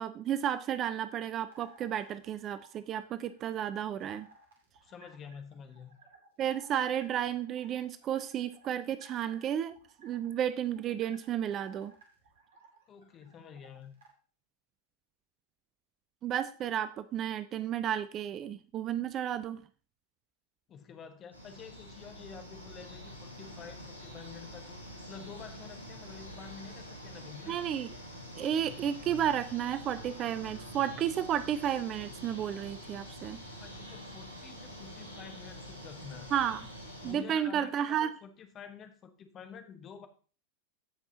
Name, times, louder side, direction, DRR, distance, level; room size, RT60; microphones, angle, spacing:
voice 1, 0.0-4.3 6.4-9.7 10.0-11.9 16.2-19.6 27.5-27.9 28.4-33.4 36.3-36.6 37.0-38.1, right 10 dB, 30° right, 14 dB, 0.5 m, -32 dB
sound 1, 1.0-14.1, right 3 dB, 60° right, 2.2 m, -59 dB
voice 2, 4.8-6.0 12.9-14.0 20.7-24.8 25.1-27.6 33.6-36.3 37.0-40.1, left 7 dB, 30° left, 7 dB, 1.2 m, -49 dB
sound 2, 21.3-37.1, equal, 80° right, 2.0 m, -46 dB
15.5 x 5.4 x 2.8 m, 0.39 s
figure-of-eight pair, 90°, 0 cm